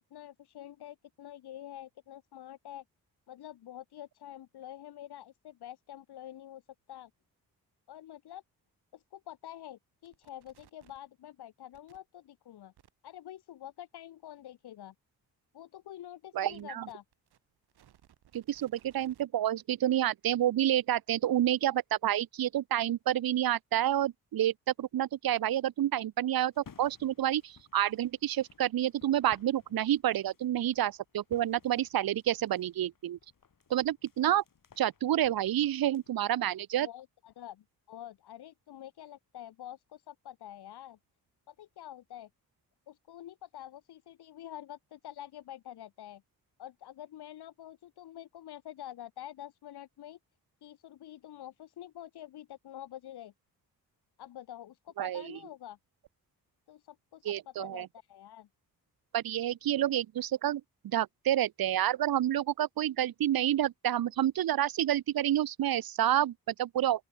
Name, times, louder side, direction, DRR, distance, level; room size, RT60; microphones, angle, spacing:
voice 1, 0.1-2.8 3.3-6.6 6.9-7.1 7.9-8.4 8.9-12.7 13.0-14.9 15.5-17.0 36.8-41.0 41.5-42.3 42.9-46.2 46.6-50.2 50.6-53.3 54.2-55.8 56.7-58.5, left 12 dB, 85° left, 3.9 m, -47 dB
sound 1, 10.0-11.1 11.7-12.0 12.8-12.9 16.5-19.2, right 11 dB, 85° right, 7.5 m, -63 dB
voice 2, 16.3-16.9 18.3-33.2 33.7-34.4 34.8-36.9 55.0-55.4 57.2-57.9 59.1-67.0, right 12 dB, 65° right, 0.9 m, -29 dB
sound 2, 26.5-36.1, left 6 dB, 55° left, 6.1 m, -60 dB
open air
supercardioid pair, 55°, 38 cm